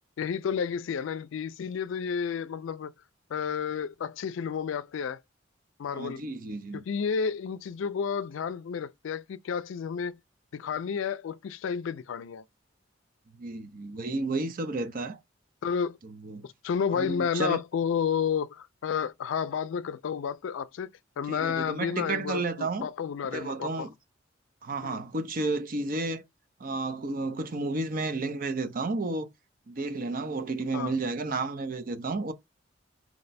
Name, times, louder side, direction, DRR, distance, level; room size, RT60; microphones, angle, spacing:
voice 1, 0.2-2.9 3.3-5.2 5.8-6.2 6.7-10.2 10.5-12.4 15.6-16.0 16.4-20.9 21.2-23.9 24.8-25.0 30.7-30.9, left 6 dB, 90° left, 0.3 m, -31 dB
voice 2, 5.9-6.8 13.3-15.2 16.0-16.5 16.9-17.6 21.3-22.9 23.3-23.9 24.6-26.2 26.6-29.3 29.7-32.3, right 3 dB, 45° right, 0.5 m, -32 dB
4.8 x 2.1 x 4.0 m
head